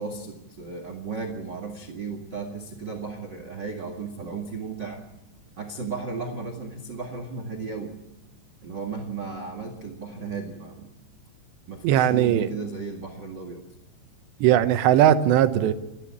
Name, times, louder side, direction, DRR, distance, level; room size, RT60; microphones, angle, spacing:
voice 1, 0.0-5.0 5.6-7.9 8.6-10.9 11.7-13.6, right 4 dB, 55° right, 5 dB, 1.2 m, -35 dB
voice 2, 11.8-12.5 14.4-15.7, right 11 dB, 75° right, 11 dB, 2.9 m, -19 dB
28.5 x 12.5 x 8.6 m, 0.99 s
omnidirectional pair, 5.5 m